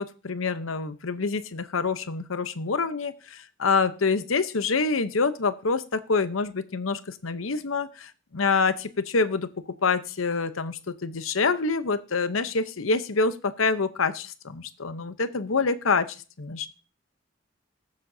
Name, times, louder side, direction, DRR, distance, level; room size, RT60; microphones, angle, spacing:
voice 1, 0.0-9.5 9.8-16.1 16.4-16.7, left 4 dB, 75° left, 12 dB, 0.9 m, -26 dB
20.5 x 7.5 x 2.8 m, 0.34 s
head